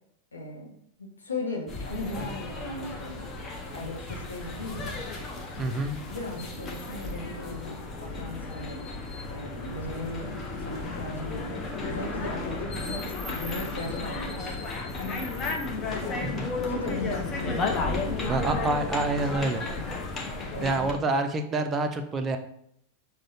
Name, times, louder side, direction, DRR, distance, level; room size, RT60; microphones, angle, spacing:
voice 1, 0.3-0.7 1.0-3.4 3.7-5.0 5.7-5.8 6.0-8.9 9.3-11.5 11.8-14.5 15.0-15.4 16.0-17.8 18.2-18.7 19.5-19.9 20.5-21.0, left 2 dB, 75° left, -1 dB, 0.7 m, -37 dB
sound 1, 1.7-20.9, left 3 dB, 25° left, 0.6 m, -34 dB
voice 2, 5.6-6.0 18.3-19.6 20.6-22.4, right 2 dB, 20° right, 7 dB, 0.4 m, -27 dB
6.0 x 2.1 x 2.6 m, 0.69 s
figure-of-eight pair, 90°, 0 cm